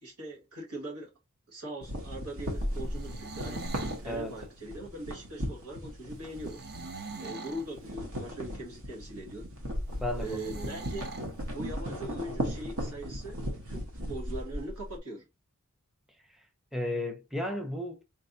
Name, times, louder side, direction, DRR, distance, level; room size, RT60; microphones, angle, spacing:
voice 1, 0.0-1.1 1.5-3.6 4.0-6.6 7.2-9.5 10.2-11.1 11.5-13.4 13.6-15.2, right 1 dB, 85° right, 1.6 m, -41 dB
sound 1, 1.8-7.3 7.6-15.0, equal, 65° right, 1.2 m, -37 dB
sound 2, 2.8-4.1 6.4-7.7 10.2-11.3, right 3 dB, 45° right, 0.6 m, -42 dB
voice 2, 4.0-4.4 10.0-10.8 16.7-18.0, left 1 dB, ahead, 0.6 m, -34 dB
4.2 x 3.4 x 2.6 m
head